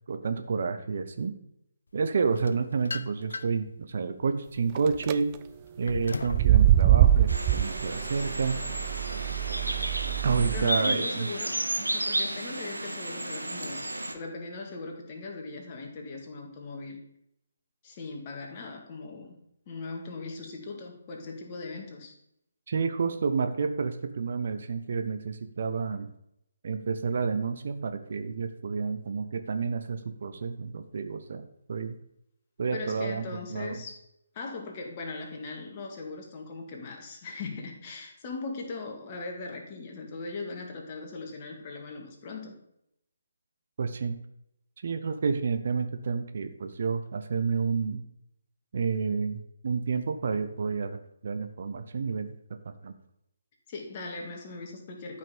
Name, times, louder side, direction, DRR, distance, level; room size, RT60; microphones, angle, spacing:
voice 1, 0.1-1.3 1.9-5.4 5.8-8.6 10.2-11.3 22.7-26.1 26.6-32.0 32.6-33.8 43.8-44.2 44.8-48.0 48.7-50.9 51.2-52.3 52.6-52.9, right 5 dB, 50° right, 8 dB, 1.0 m, -30 dB
sound 1, 2.3-3.7 4.2-6.5, left 3 dB, 65° left, 0.7 m, -38 dB
sound 2, 4.8-5.1 6.2-10.6, right 12 dB, 25° right, 0.4 m, -24 dB
sound 3, 7.3-14.1, right 1 dB, 80° right, 1.6 m, -33 dB
voice 2, 10.3-13.9 14.1-17.0 17.8-19.4 19.7-22.2 32.7-34.0 34.3-42.5 53.7-55.2, left 3 dB, 30° left, 1 dB, 2.2 m, -39 dB
12.0 x 5.7 x 5.2 m, 0.77 s
figure-of-eight pair, 140°, 0 cm